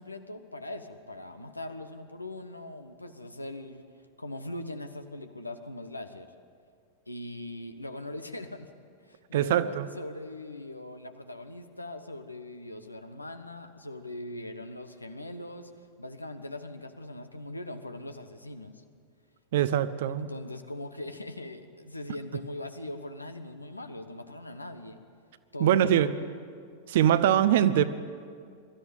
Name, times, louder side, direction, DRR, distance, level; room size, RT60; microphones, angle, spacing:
voice 1, 0.0-3.8 4.2-6.3 7.1-8.7 9.0-15.7 16.0-18.8 20.2-25.0 25.5-26.4, left 1 dB, 85° left, 8 dB, 1.2 m, -41 dB
voice 2, 9.3-9.9 19.5-20.3 25.6-26.1 26.9-27.8, right 10 dB, 55° right, 14 dB, 0.8 m, -23 dB
22.5 x 13.5 x 9.0 m, 2.2 s
figure-of-eight pair, 90°, 0 cm